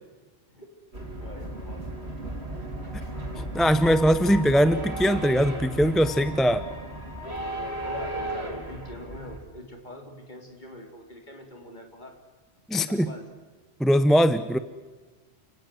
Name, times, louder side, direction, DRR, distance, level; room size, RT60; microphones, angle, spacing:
voice 1, 0.5-2.2 2.5-2.7 3.7-3.9 7.8-12.2 12.7-13.3, left 1 dB, 45° left, 3 dB, 3.9 m, -44 dB
sound 1, 0.9-9.4, right 1 dB, 80° right, 4.7 m, -35 dB
voice 2, 3.4-6.6 12.7-13.1 13.8-14.6, equal, ahead, 12 dB, 0.7 m, -21 dB
30.0 x 17.5 x 7.9 m, 1.3 s
omnidirectional pair, 1.1 m